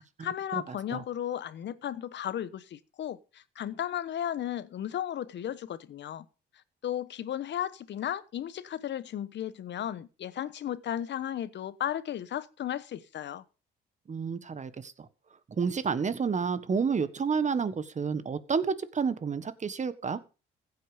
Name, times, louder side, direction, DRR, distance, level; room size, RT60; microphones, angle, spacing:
voice 1, 0.0-6.2 6.8-13.4, left 10 dB, 65° left, 1.1 m, -35 dB
voice 2, 14.1-14.9 15.6-20.2, right 5 dB, 35° right, 1.5 m, -30 dB
15.5 x 8.3 x 5.1 m
cardioid pair, 90°, 20 cm